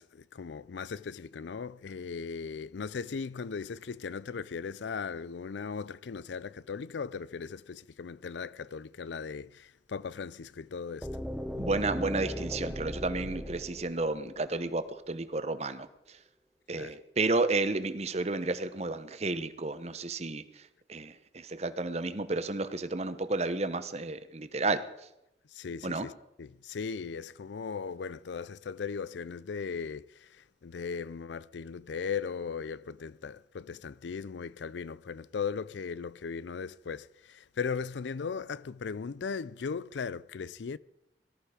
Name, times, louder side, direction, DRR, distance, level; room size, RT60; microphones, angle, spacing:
voice 1, 0.0-11.1 16.7-16.9 25.5-26.1 26.4-40.8, left 5 dB, 75° left, 0.4 m, -38 dB
sound 1, 11.0-14.9, equal, ahead, 0.7 m, -38 dB
voice 2, 11.6-16.2 16.7-24.8 25.8-26.1, right 3 dB, 35° right, 1.0 m, -32 dB
18.5 x 13.5 x 5.0 m
head